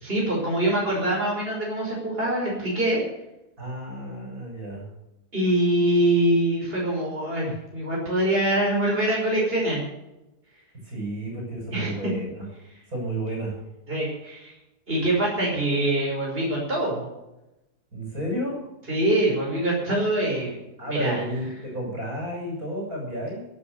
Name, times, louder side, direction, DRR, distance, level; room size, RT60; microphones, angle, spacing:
voice 1, 0.0-3.0 5.3-9.8 11.7-12.1 13.9-14.5 14.9-17.1 18.9-20.6 20.9-21.2, right 1 dB, 35° right, -3 dB, 5.8 m, -24 dB
voice 2, 3.6-4.9 7.4-7.5 10.8-12.5 12.9-13.6 15.5-15.6 17.9-18.6 20.8-23.5, right 1 dB, 60° right, -1 dB, 6.9 m, -32 dB
16.5 x 10.5 x 6.9 m, 0.94 s
omnidirectional pair, 1.7 m